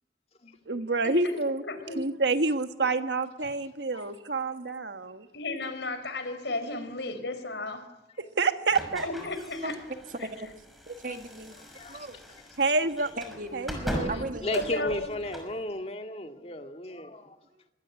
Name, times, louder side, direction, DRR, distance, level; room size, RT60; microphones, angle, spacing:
voice 1, 0.7-1.6 2.0-5.3 8.4-9.1 12.6-13.1 13.5-14.4, right 3 dB, 75° right, 1.5 m, -28 dB
voice 2, 1.6-2.0 5.3-7.9 9.0-9.7 14.5-15.1, left 2 dB, 80° left, 4.4 m, -34 dB
sound 1, 8.7-15.6, equal, ahead, 5.8 m, -40 dB
voice 3, 10.9-11.6 11.9-12.2 13.0-13.7 14.1-15.0 17.5-17.6, right 2 dB, 45° right, 1.9 m, -37 dB
voice 4, 11.7-12.1 13.9-17.4, left 1 dB, 35° left, 2.1 m, -35 dB
25.5 x 20.5 x 9.6 m
head